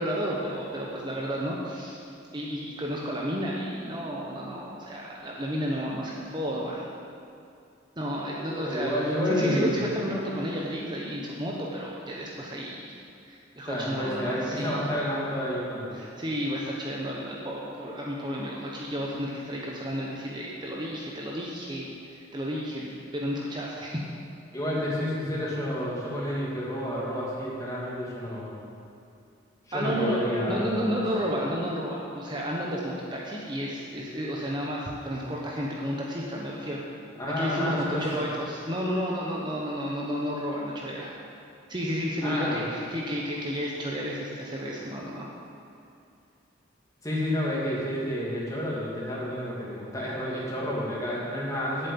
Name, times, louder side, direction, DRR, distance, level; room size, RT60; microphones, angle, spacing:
voice 1, 0.0-2.0 2.3-6.9 8.0-8.9 9.3-12.9 13.2-14.8 15.9-24.1 29.7-30.2 30.5-36.8 37.3-41.1 41.7-45.3, equal, 25° right, -3 dB, 1.0 m, -32 dB
voice 2, 8.5-9.8 13.6-16.0 24.5-28.6 29.7-31.0 37.2-38.0 42.2-42.6 47.0-51.9, equal, 20° left, -6 dB, 2.4 m, -30 dB
8.3 x 7.4 x 8.7 m, 2.5 s
head